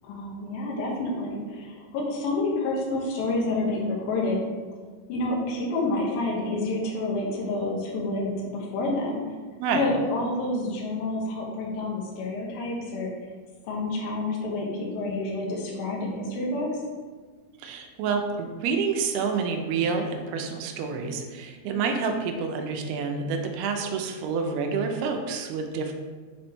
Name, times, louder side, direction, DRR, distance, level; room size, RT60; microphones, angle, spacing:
voice 1, 0.0-4.4 5.1-9.2 9.7-13.1 13.6-16.7, left 2 dB, 70° left, -3 dB, 2.6 m, -28 dB
voice 2, 17.6-25.9, right 5 dB, 80° right, 4 dB, 2.5 m, -28 dB
6.7 x 4.0 x 3.5 m, 1.5 s
omnidirectional pair, 4.7 m